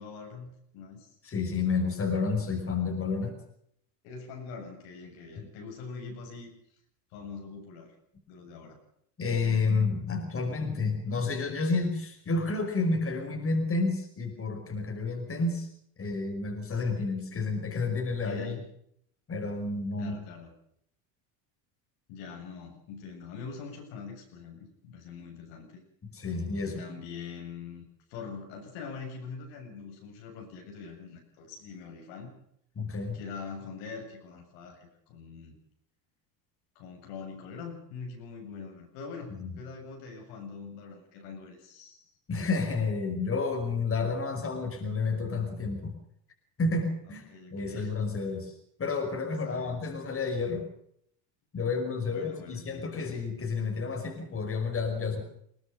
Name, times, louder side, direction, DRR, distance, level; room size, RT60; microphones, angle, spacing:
voice 1, 0.0-1.1 4.0-6.5 7.1-7.9 8.3-8.8 18.2-18.7 20.0-20.5 22.1-25.8 26.6-27.8 28.1-32.3 33.1-35.6 36.8-42.1 47.3-48.2 49.3-50.2 52.1-53.2, left 5 dB, 75° left, 2 dB, 7.5 m, -43 dB
voice 2, 1.2-3.4 5.4-5.5 9.2-15.7 16.0-18.6 19.3-20.2 26.0-26.8 32.8-33.2 39.4-39.5 42.3-46.0 46.6-48.5 48.8-50.7 51.5-55.2, left 4 dB, 30° left, 4 dB, 5.4 m, -30 dB
21.5 x 18.5 x 6.9 m, 0.68 s
supercardioid pair, 100°, 44 cm